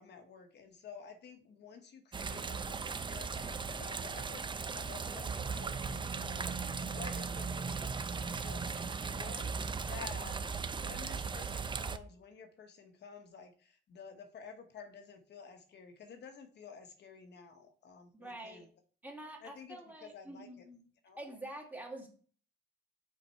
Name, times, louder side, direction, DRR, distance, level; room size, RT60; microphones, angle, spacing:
voice 1, 0.0-10.5 10.8-18.7 19.4-19.8 20.0-20.7 21.0-21.2, left 6 dB, 60° left, 6 dB, 1.1 m, -52 dB
sound 1, 2.1-12.0, right 5 dB, 25° right, 0.5 m, -37 dB
voice 2, 18.1-18.7 19.0-20.8 21.2-22.1, right 1 dB, 10° right, 0 dB, 2.0 m, -47 dB
5.3 x 4.4 x 4.4 m, 0.42 s
cardioid pair, 90°, 20 cm